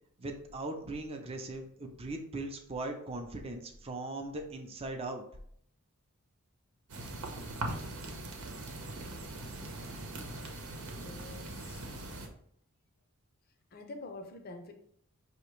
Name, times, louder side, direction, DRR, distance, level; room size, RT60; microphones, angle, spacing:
voice 1, 0.2-5.2, right 2 dB, 25° right, 3 dB, 0.5 m, -39 dB
sound 1, 6.9-12.3, right 2 dB, 85° right, 0.9 m, -41 dB
voice 2, 10.9-12.0 13.7-14.7, left 2 dB, 45° left, 4 dB, 0.6 m, -47 dB
5.7 x 2.8 x 3.1 m, 0.65 s
head